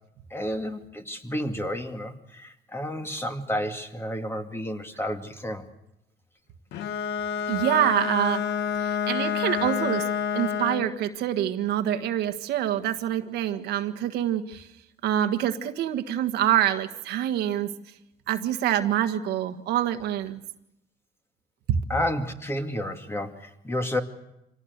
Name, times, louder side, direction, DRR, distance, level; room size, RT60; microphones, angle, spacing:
voice 1, 0.3-5.7 21.9-24.0, left 1 dB, 15° left, 5 dB, 2.2 m, -31 dB
Bowed string instrument, 6.7-11.0, left 7 dB, 75° left, 1.3 m, -28 dB
voice 2, 7.5-8.4 8.8-10.1 10.3-14.7 15.0-17.7 18.3-20.4 21.7-21.8, right 11 dB, 80° right, 7 dB, 1.5 m, -26 dB
26.0 x 18.0 x 8.1 m, 0.88 s
cardioid pair, 110°, 17 cm